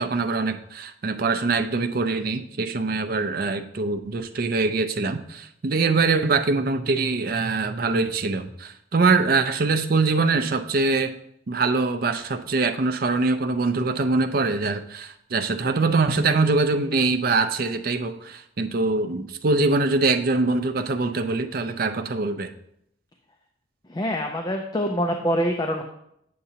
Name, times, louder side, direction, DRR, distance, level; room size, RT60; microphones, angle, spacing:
voice 1, 0.0-11.1 11.5-22.5, right 3 dB, 50° right, 8 dB, 0.5 m, -23 dB
voice 2, 23.9-25.8, equal, 20° left, 3 dB, 0.4 m, -25 dB
8.4 x 6.7 x 2.8 m, 0.75 s
head